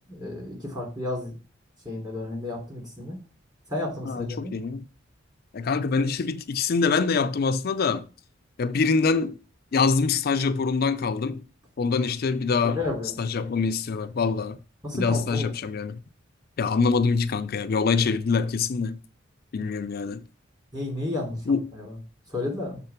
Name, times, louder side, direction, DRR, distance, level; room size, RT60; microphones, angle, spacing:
voice 1, 0.1-1.3 1.8-3.1 3.7-4.5 12.6-13.1 14.8-15.5 20.7-21.4 21.7-22.0 22.3-22.8, left 2 dB, 20° right, 2.9 m, -32 dB
voice 2, 4.0-4.9 5.5-8.1 8.6-9.4 9.7-11.4 11.8-12.8 13.2-14.6 14.9-16.0 16.6-19.0 19.5-20.2 21.5-21.7, left 4 dB, 50° left, 0.4 m, -24 dB
6.7 x 3.7 x 5.7 m
head